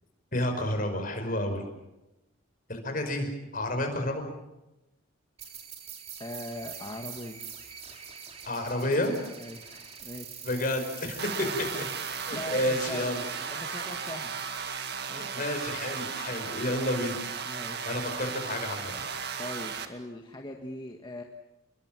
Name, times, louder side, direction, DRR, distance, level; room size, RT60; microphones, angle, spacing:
voice 1, 0.3-1.6 2.7-4.2 8.5-9.2 10.4-11.7 12.2-13.2 15.1-17.2 17.8-19.0, left 1 dB, 40° left, 5 dB, 5.3 m, -30 dB
sound 1, 5.4-14.6, right 7 dB, 30° right, 3.0 m, -44 dB
voice 2, 6.2-7.4 9.4-10.4 11.4-11.9 12.3-14.4 15.1-15.5 17.4-17.9 19.4-21.2, left 1 dB, 20° left, 3 dB, 1.6 m, -41 dB
sound 2, 11.2-19.8, right 6 dB, 55° right, 2.1 m, -35 dB
29.0 x 22.0 x 7.5 m, 0.97 s
head